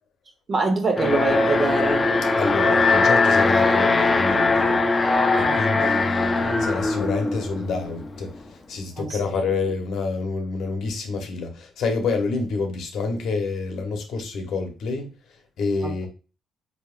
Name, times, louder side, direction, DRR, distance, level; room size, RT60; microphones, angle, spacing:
voice 1, 0.5-2.1 5.4-6.1 9.0-9.2 15.8-15.9, right 2 dB, 40° right, 1.1 m, -25 dB
Alarm, 1.0-8.1, left 3 dB, 25° left, 0.6 m, -20 dB
voice 2, 2.4-4.8 5.3-15.1 15.6-16.1, left 4 dB, 75° left, 1.0 m, -28 dB
4.3 x 3.6 x 2.5 m
cardioid pair, 90°, 0 cm